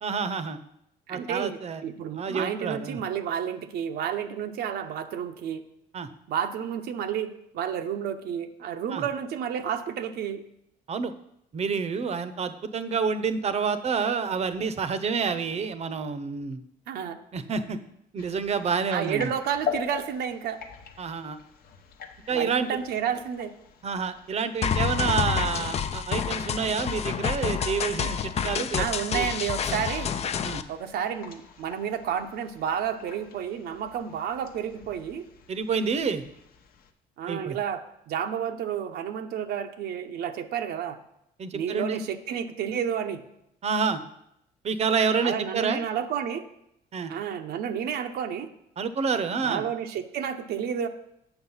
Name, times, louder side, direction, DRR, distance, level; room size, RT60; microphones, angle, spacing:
voice 1, 0.0-0.6 1.1-1.8 2.2-3.0 5.9-6.1 8.9-9.0 10.9-11.1 11.5-16.6 17.3-17.8 18.1-19.3 21.0-21.4 22.3-22.7 23.8-28.9 29.1-29.3 30.4-30.6 35.5-36.2 37.3-37.6 41.4-42.0 43.6-44.0 44.6-45.8 46.9-47.1 48.8-49.6, right 5 dB, 40° right, 12 dB, 0.7 m, -28 dB
voice 2, 1.1-5.6 6.3-10.4 16.9-17.2 18.9-20.6 22.3-23.5 28.8-30.1 30.7-35.3 37.2-41.0 41.5-43.2 45.2-46.4 47.1-48.5 49.4-50.9, right 8 dB, 70° right, 6 dB, 0.7 m, -31 dB
sound 1, 18.2-36.9, left 7 dB, 60° left, 1.0 m, -43 dB
sound 2, 24.6-30.6, left 7 dB, 40° left, 0.5 m, -28 dB
7.9 x 6.4 x 5.6 m, 0.78 s
cardioid pair, 110°, 17 cm